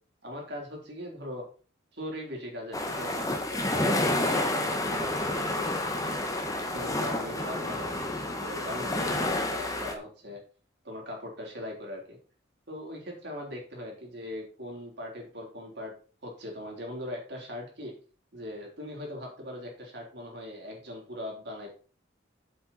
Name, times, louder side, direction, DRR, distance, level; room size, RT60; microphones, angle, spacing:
voice 1, 0.2-1.4 1.9-4.1 4.6-5.8 6.7-10.4 10.8-12.2 12.7-15.9 16.2-17.9 18.3-21.7, left 1 dB, 55° right, -1 dB, 3.8 m, -40 dB
sound 1, 2.7-9.9, left 1 dB, 15° left, 1.2 m, -29 dB
7.8 x 7.8 x 4.3 m, 0.39 s
head